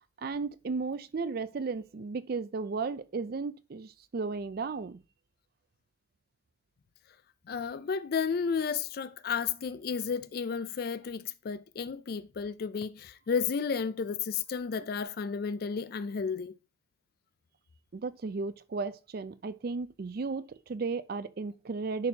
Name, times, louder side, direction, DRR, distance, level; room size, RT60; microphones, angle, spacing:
voice 1, 0.2-5.0 17.9-22.1, right 4 dB, 50° right, 0.4 m, -34 dB
voice 2, 7.5-16.5, left 6 dB, 55° left, 0.4 m, -32 dB
10.5 x 4.4 x 2.8 m
head